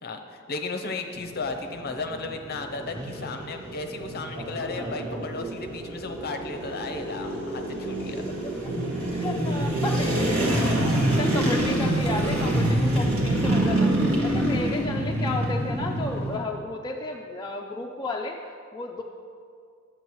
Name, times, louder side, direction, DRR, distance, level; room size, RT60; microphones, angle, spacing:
voice 1, 0.0-8.2, left 3 dB, 45° left, 6 dB, 0.7 m, -35 dB
sound 1, 1.1-16.4, right 1 dB, 70° right, 1.8 m, -26 dB
voice 2, 9.0-13.9 14.2-19.0, left 2 dB, 20° left, 0 dB, 0.4 m, -33 dB
11.0 x 7.9 x 3.0 m, 2.2 s
head